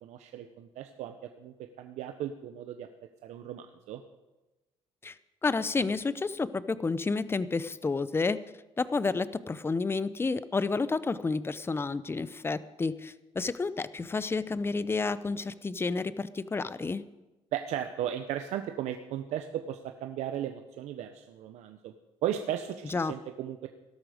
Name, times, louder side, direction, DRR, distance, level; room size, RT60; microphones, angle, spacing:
voice 1, 0.0-2.9 3.2-4.0 17.5-21.9 22.2-23.7, right 10 dB, 85° right, 7 dB, 0.9 m, -36 dB
voice 2, 5.4-8.4 8.8-17.0 22.8-23.1, left 4 dB, 20° left, 15 dB, 0.7 m, -30 dB
17.5 x 12.5 x 5.1 m, 1.1 s
cardioid pair, 115°, 11 cm